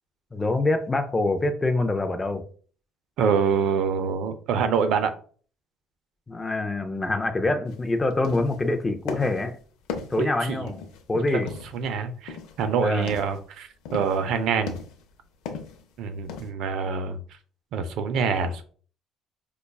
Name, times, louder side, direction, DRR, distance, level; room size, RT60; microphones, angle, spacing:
voice 1, 0.3-2.4 6.3-9.6 10.1-10.8 11.1-11.5 12.8-13.2, left 2 dB, 15° left, 0.4 m, -25 dB
voice 2, 3.2-5.1 10.2-10.7 11.3-14.8 16.0-17.2 17.7-18.7, right 6 dB, 65° right, 0.4 m, -26 dB
sound 1, 7.7-7.8 8.1-8.7 9.1-9.5 9.9-11.1 11.5-11.9 12.3-12.6 12.9-13.4 13.9-14.2 14.7-15.1 15.5-15.8 16.3-16.5, left 5 dB, 85° left, 0.5 m, -37 dB
5.0 x 2.3 x 2.3 m
cardioid pair, 145°, 0 cm